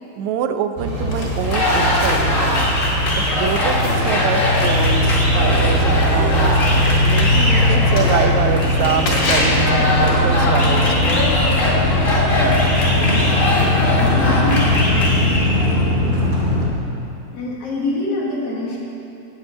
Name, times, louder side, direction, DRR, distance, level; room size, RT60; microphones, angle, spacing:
voice 1, 0.2-2.7 3.1-6.5 7.0-11.2, right 7 dB, 80° right, 8 dB, 1.7 m, -25 dB
sound 1, 0.8-16.7, left 1 dB, 35° right, 1.6 m, -19 dB
sound 2, 1.1-9.6, left 2 dB, 75° left, 3.9 m, -30 dB
sound 3, 1.4-15.8, left 1 dB, 40° left, 1.2 m, -21 dB
voice 2, 12.4-16.8 17.3-18.8, left 2 dB, 55° left, -3 dB, 2.0 m, -27 dB
8.4 x 8.0 x 9.0 m, 3.0 s
omnidirectional pair, 3.9 m